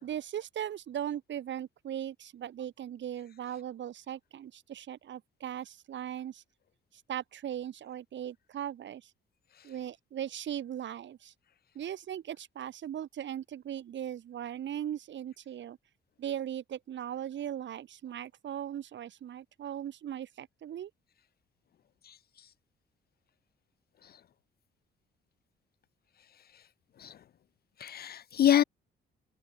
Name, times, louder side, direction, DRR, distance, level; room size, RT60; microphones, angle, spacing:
voice 1, 0.0-6.4 7.1-9.1 9.6-11.3 11.7-15.8 16.2-20.9, right 10 dB, 65° right, 6.0 m, -38 dB
voice 2, 22.0-22.5 24.0-24.2 26.4-26.6 27.0-27.2 27.8-28.6, left 10 dB, 50° left, 0.6 m, -29 dB
cardioid pair, 90°, 20 cm